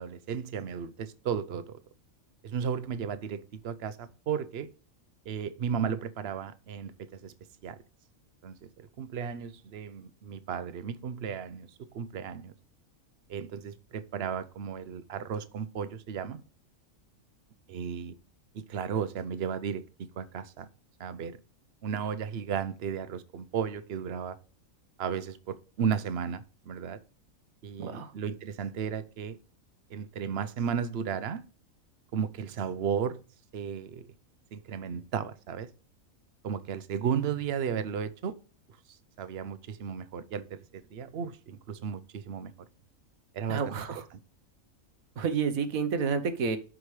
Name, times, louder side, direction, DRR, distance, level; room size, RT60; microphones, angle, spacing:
voice 1, 0.0-1.8 2.4-4.7 5.3-7.3 7.6-7.8 8.4-12.5 13.3-16.4 17.7-18.1 18.5-20.7 21.0-21.4 21.8-24.4 25.0-27.0 27.6-29.4 29.9-31.4 32.1-33.2 33.5-34.0 34.5-35.7 36.4-38.4 39.2-42.5 43.3-43.8 44.1-44.2, right 7 dB, 55° right, 0.9 m, -34 dB
voice 2, 27.8-28.1 43.5-44.0 45.2-46.6, right 5 dB, 85° right, 1.5 m, -29 dB
12.5 x 5.0 x 3.2 m
omnidirectional pair, 1.4 m